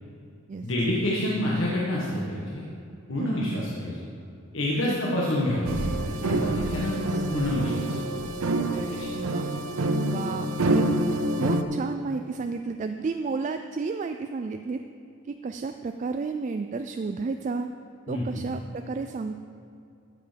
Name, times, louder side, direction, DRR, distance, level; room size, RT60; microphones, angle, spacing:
voice 1, 0.6-2.7 3.1-4.0 4.5-7.0 7.3-7.8 8.9-9.1 18.1-18.4, left 1 dB, 65° left, -5 dB, 1.5 m, -28 dB
voice 2, 3.2-3.6 4.8-5.0 6.9-7.3 9.1-9.5 10.0-10.9 11.4-14.8 15.2-17.7 18.1-19.4, right 4 dB, 35° right, 7 dB, 0.3 m, -32 dB
sound 1, 5.6-11.6, right 1 dB, 90° right, 0.7 m, -27 dB
14.0 x 6.7 x 5.2 m, 2.6 s
head